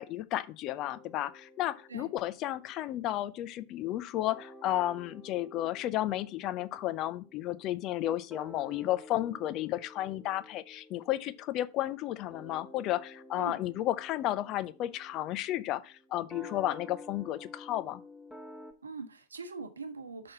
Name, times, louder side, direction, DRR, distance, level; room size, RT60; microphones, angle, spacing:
voice 1, 0.0-18.0, left 14 dB, 35° left, 0.5 m, -33 dB
sound 1, 0.8-4.0 4.3-18.7, left 1 dB, 5° left, 1.4 m, -52 dB
voice 2, 18.8-20.3, right 4 dB, 75° right, 1.0 m, -42 dB
6.4 x 4.3 x 5.5 m
figure-of-eight pair, 90°, 0 cm